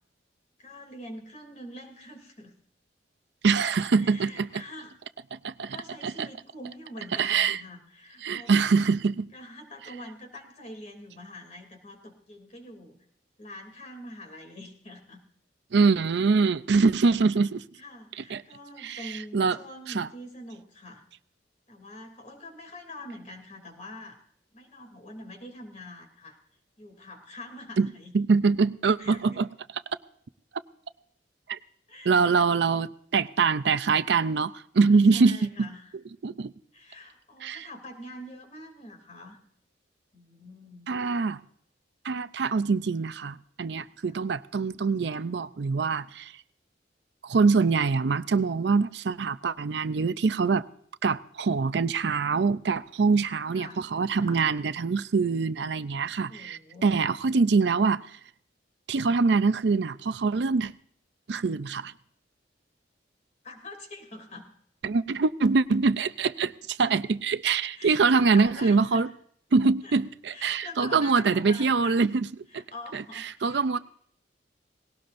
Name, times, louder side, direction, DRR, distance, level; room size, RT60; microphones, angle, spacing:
voice 1, 0.6-2.5 3.9-4.9 5.7-8.5 9.3-13.0 13.4-15.2 17.8-21.0 21.7-24.2 24.5-26.4 26.8-28.1 29.0-29.5 31.9-32.4 34.8-35.9 36.7-39.4 40.1-40.9 44.0-44.1 53.2-53.8 54.2-54.5 56.3-57.1 63.4-64.5 67.8-69.1 69.8-70.0 70.3-72.1 72.5-73.8, left 1 dB, 40° left, 2.8 m, -44 dB
voice 2, 3.4-4.6 5.3-5.8 6.0-6.3 7.2-7.6 8.2-9.3 15.7-17.6 18.2-18.4 18.8-19.6 19.9-20.1 27.8-27.9 28.1-29.5 31.5-31.6 32.1-35.7 36.2-36.5 37.4-37.7 40.9-41.4 42.0-46.3 47.2-50.7 51.0-58.1 58.9-60.7 61.3-61.9 64.8-69.1 69.5-72.3 72.5-72.6 72.9-73.8, right 4 dB, 65° right, 0.5 m, -24 dB
19.0 x 17.5 x 2.6 m
head